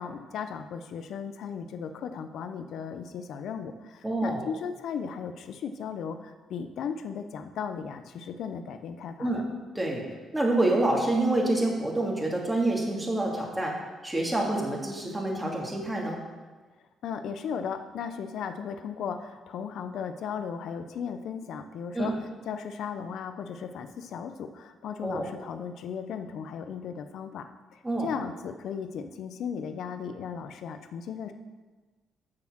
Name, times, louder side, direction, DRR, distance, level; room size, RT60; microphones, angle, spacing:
voice 1, 0.0-9.4 17.0-22.1 22.5-27.5 27.7-31.3, left 7 dB, 75° left, 8 dB, 0.7 m, -36 dB
voice 2, 4.0-4.4 9.2-9.4 9.7-10.0 10.3-13.7 14.0-16.2 21.9-22.1 25.0-25.3 27.8-28.1, right 2 dB, 15° right, -1 dB, 2.2 m, -27 dB
7.2 x 6.7 x 6.2 m, 1.3 s
cardioid pair, 90°, 0 cm